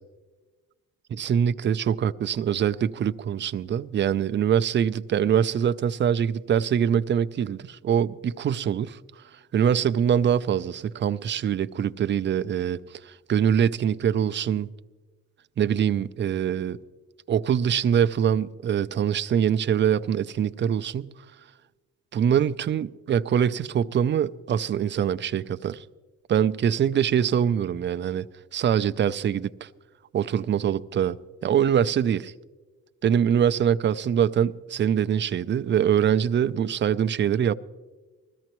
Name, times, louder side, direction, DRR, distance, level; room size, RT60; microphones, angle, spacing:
voice 1, 1.1-9.0 9.5-14.7 15.6-16.8 17.3-21.1 22.1-25.8 26.3-28.3 28.5-29.7 30.1-31.2 31.4-32.3 33.0-37.6, right 8 dB, 40° right, 0.4 m, -24 dB
20.0 x 14.0 x 3.0 m
cardioid pair, 90°, 30 cm